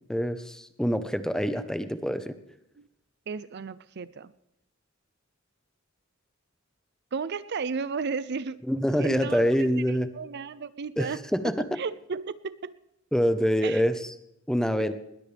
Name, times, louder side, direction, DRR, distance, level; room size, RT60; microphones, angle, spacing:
voice 1, 0.1-2.3 8.7-10.1 11.0-11.6 13.1-13.9 14.5-14.9, equal, 5° left, 10 dB, 0.9 m, -25 dB
voice 2, 3.3-4.3 7.1-8.6 9.0-9.8 10.1-11.2 11.8-12.7 13.6-13.8 14.8-14.9, right 5 dB, 55° right, 16 dB, 0.5 m, -34 dB
20.5 x 20.5 x 3.4 m, 0.84 s
head